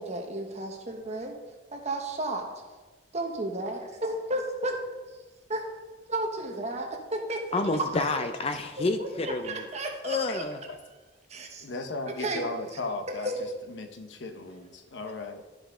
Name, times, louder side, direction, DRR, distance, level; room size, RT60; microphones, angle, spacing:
voice 1, 0.0-1.3 1.7-2.5 3.1-4.8 5.1-5.2 5.5-5.6 6.1-7.6 8.0-8.1 8.8-10.5 11.3-11.7 12.2-12.4 13.1-13.5, right 1 dB, 40° right, 3 dB, 1.1 m, -33 dB
voice 2, 7.5-9.6 10.0-10.6, left 3 dB, 35° left, 7 dB, 0.5 m, -29 dB
voice 3, 11.6-13.3 13.7-15.4, left 2 dB, 75° left, 6 dB, 0.9 m, -36 dB
12.0 x 5.1 x 3.7 m, 1.3 s
head